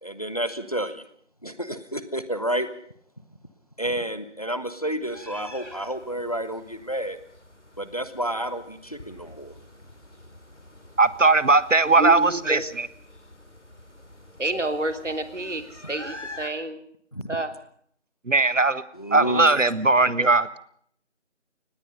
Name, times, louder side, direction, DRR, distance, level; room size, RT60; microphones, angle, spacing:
voice 1, 0.0-1.0 1.4-2.7 3.8-7.2 7.8-9.5 17.1-17.4 18.9-19.5, right 1 dB, 30° left, 12 dB, 1.3 m, -30 dB
sound 1, 5.0-16.5, left 1 dB, 70° left, 4.3 m, -46 dB
voice 2, 11.0-12.6 18.3-18.8 19.1-20.6, right 3 dB, 90° right, 16 dB, 1.6 m, -19 dB
voice 3, 11.8-12.6 14.4-16.8 17.3-17.5, right 2 dB, 75° right, 7 dB, 3.2 m, -29 dB
24.5 x 19.5 x 5.5 m, 0.64 s
figure-of-eight pair, 180°, 37 cm